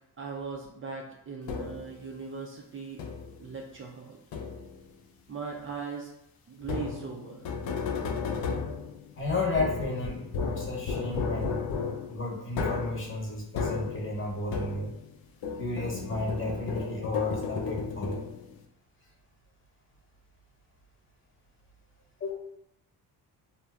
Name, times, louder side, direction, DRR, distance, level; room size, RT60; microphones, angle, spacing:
voice 1, 0.2-3.0 3.4-4.2 5.3-6.1 6.5-7.4, right 5 dB, 35° right, -1 dB, 0.4 m, -39 dB
sound 1, 1.5-2.0 3.0-3.5 4.3-4.9 6.6-15.1 15.4-18.6, left 5 dB, 65° left, 0.5 m, -34 dB
voice 2, 9.2-11.6 12.1-14.9 15.6-18.2 22.2-22.3, left 2 dB, 30° left, -2 dB, 0.8 m, -32 dB
2.5 x 2.1 x 3.4 m, 0.79 s
cardioid pair, 110°, 39 cm